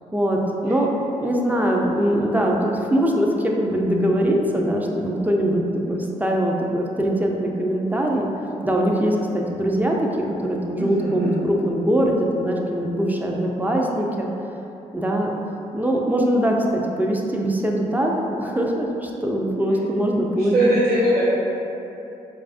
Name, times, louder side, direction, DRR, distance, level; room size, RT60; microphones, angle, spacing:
voice 1, 0.1-0.9 1.2-5.6 5.9-8.3 8.6-10.1 10.4-14.3 14.9-15.4 15.7-18.1 18.4-20.5, right 1 dB, 10° right, -1 dB, 0.5 m, -22 dB
voice 2, 10.8-11.3 20.5-21.3, right 1 dB, 75° right, -13 dB, 0.9 m, -20 dB
4.5 x 2.4 x 2.5 m, 3.0 s
hypercardioid pair, 50°, 17 cm